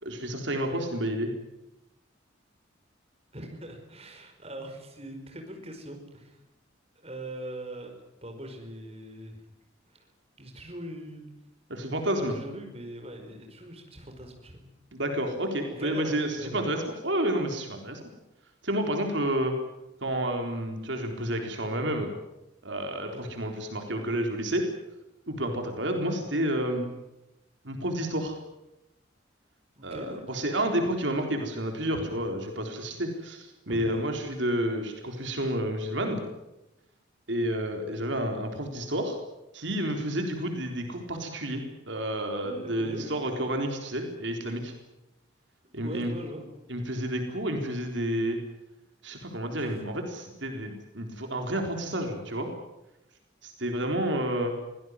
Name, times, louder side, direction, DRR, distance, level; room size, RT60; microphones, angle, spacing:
voice 1, 0.0-1.3 11.7-12.4 14.9-18.0 18.6-19.5 20.0-22.1 22.6-24.7 25.3-26.9 27.6-28.4 29.8-36.2 37.3-39.2 39.5-44.7 45.7-46.1 46.7-48.4 49.0-52.5 53.4-54.5, right 1 dB, 70° right, 4 dB, 3.9 m, -30 dB
voice 2, 3.3-6.4 6.9-7.9 8.2-9.4 9.9-10.1 10.4-11.3 12.2-14.7 15.7-16.9 23.1-23.2 29.7-30.2 31.9-32.1 33.7-34.0 42.4-43.2 45.8-46.4, right 1 dB, 30° right, 3 dB, 5.1 m, -41 dB
24.5 x 17.5 x 9.7 m, 0.92 s
head